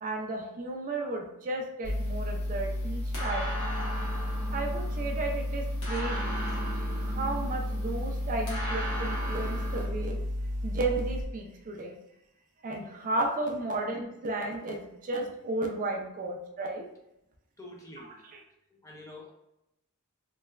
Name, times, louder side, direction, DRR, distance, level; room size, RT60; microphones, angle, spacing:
voice 1, 0.0-3.5 4.5-6.4 7.0-10.2 10.6-11.9 12.6-16.8 18.0-18.4, right 2 dB, 35° right, 1 dB, 0.4 m, -34 dB
sound 1, 1.8-11.2, left 1 dB, 80° right, 0.7 m, -32 dB
sound 2, 1.9-9.8, right 1 dB, 80° left, 1.1 m, -39 dB
voice 2, 17.6-18.2 18.7-19.3, left 1 dB, 15° left, -2 dB, 0.5 m, -47 dB
3.1 x 2.2 x 2.2 m, 0.85 s
head